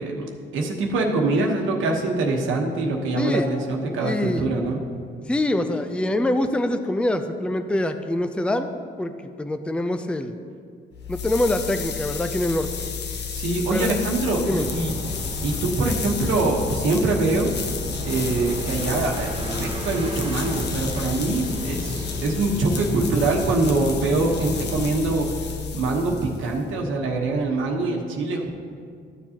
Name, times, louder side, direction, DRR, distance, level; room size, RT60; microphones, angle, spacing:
voice 1, 0.0-4.8 13.3-14.9 15.4-17.5 18.0-25.3 25.7-28.5, right 2 dB, 80° right, 0 dB, 1.2 m, -24 dB
voice 2, 3.2-3.5 4.0-4.4 5.3-9.1 9.4-10.3 11.1-12.8 13.7-14.0 14.5-14.7, left 1 dB, 5° left, 8 dB, 0.4 m, -24 dB
sound 1, 10.9-26.7, left 7 dB, 60° left, 0.9 m, -32 dB
sound 2, 14.0-25.2, right 1 dB, 25° right, 1.2 m, -33 dB
13.0 x 7.0 x 2.9 m, 2.2 s
cardioid pair, 90°, 20 cm